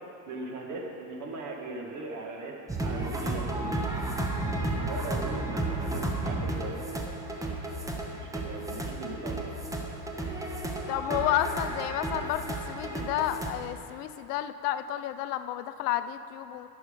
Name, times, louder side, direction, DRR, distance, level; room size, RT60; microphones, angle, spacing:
voice 1, 0.3-2.5 2.8-3.5 4.8-6.8 8.1-9.5, right 3 dB, 40° right, 0 dB, 1.8 m, -38 dB
sound 1, 2.7-13.5, right 2 dB, 5° right, 0.8 m, -33 dB
voice 2, 4.4-4.7 10.9-16.7, left 12 dB, 75° left, 11 dB, 0.7 m, -31 dB
12.5 x 6.2 x 5.2 m, 2.6 s
supercardioid pair, 115°, 48 cm